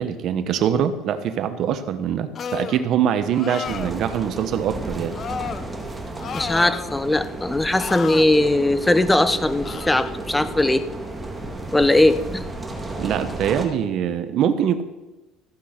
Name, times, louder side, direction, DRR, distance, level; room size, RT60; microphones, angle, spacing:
voice 1, 0.0-5.2 13.0-14.8, right 9 dB, 55° right, 11 dB, 1.1 m, -23 dB
sound 1, 2.3-2.8 3.3-4.0 5.1-5.6 6.2-7.0 7.8-8.3 9.6-10.1, left 7 dB, 35° left, 0.8 m, -32 dB
sound 2, 3.6-13.7, right 2 dB, 10° right, 2.2 m, -33 dB
voice 2, 6.3-10.9 11.7-12.4, left 1 dB, 10° left, 12 dB, 0.9 m, -19 dB
15.0 x 8.5 x 5.9 m, 1.1 s
cardioid pair, 125°, 0 cm